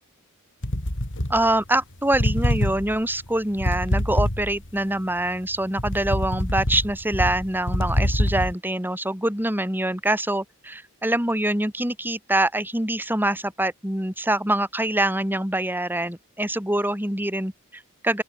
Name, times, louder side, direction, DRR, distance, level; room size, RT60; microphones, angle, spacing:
sound 1, 0.6-1.8 2.1-4.8 5.3-8.5, left 1 dB, 60° left, 4.4 m, -25 dB
voice 1, 1.3-18.2, right 1 dB, 10° right, 5.7 m, -25 dB
open air
head